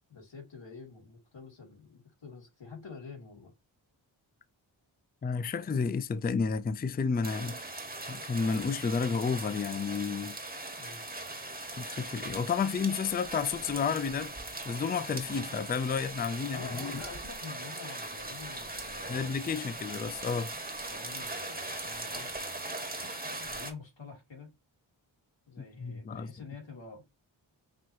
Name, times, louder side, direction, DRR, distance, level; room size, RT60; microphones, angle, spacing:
voice 1, 0.1-3.5 10.8-11.0 16.5-19.3 20.8-22.3 23.2-24.5 25.5-27.1, left 4 dB, 65° left, 2.5 m, -47 dB
voice 2, 5.2-7.6 8.1-10.4 11.8-14.3 14.7-16.9 19.1-20.5 25.8-26.3, left 5 dB, 20° left, 0.4 m, -31 dB
sound 1, 7.2-23.7, right 2 dB, 20° right, 1.5 m, -40 dB
6.1 x 3.0 x 2.7 m
cardioid pair, 40°, 48 cm